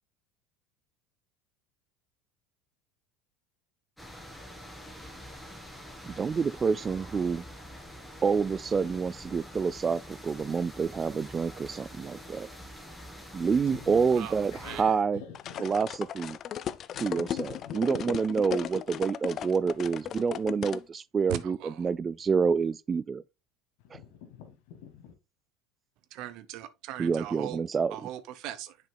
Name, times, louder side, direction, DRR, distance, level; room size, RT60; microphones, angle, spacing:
sound 1, 4.0-14.8, equal, ahead, 2.0 m, -46 dB
voice 1, 6.1-7.4 8.2-12.5 13.3-15.2 15.6-16.4 17.0-23.2 23.9-24.0 27.0-28.0, right 5 dB, 25° right, 0.3 m, -28 dB
voice 2, 13.6-14.1 14.5-15.7 16.9-17.8 23.8-25.1, left 7 dB, 70° left, 1.7 m, -46 dB
voice 3, 14.2-15.0 21.3-21.9 26.1-27.6 27.9-28.8, right 13 dB, 60° right, 0.7 m, -39 dB
sound 2, 15.3-20.8, left 10 dB, 45° left, 0.4 m, -36 dB
7.4 x 6.0 x 2.2 m
supercardioid pair, 95°, 0 cm